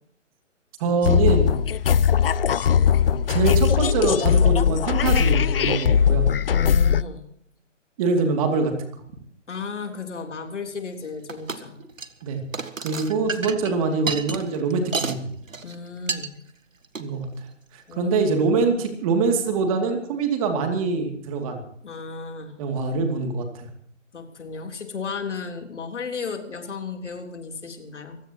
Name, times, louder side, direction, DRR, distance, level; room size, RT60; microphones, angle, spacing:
voice 1, 0.8-1.6 3.3-6.3 8.0-8.7 12.2-12.4 12.8-15.2 17.0-17.3 17.7-21.6 22.6-23.7, right 4 dB, 25° right, 5 dB, 2.7 m, -24 dB
sound 1, 1.0-7.0, left 8 dB, 50° left, 0.6 m, -19 dB
voice 2, 6.5-7.2 9.5-11.8 15.6-16.4 17.9-18.1 21.8-22.6 24.1-28.2, left 5 dB, 65° left, 4 dB, 3.6 m, -34 dB
sound 2, 11.3-11.6 11.9-12.2 12.5-15.2 15.5-15.8 16.1-16.3 16.8-17.1, right 4 dB, 85° right, 1.8 m, -30 dB
25.0 x 16.0 x 3.0 m, 0.65 s
figure-of-eight pair, 150°, 38 cm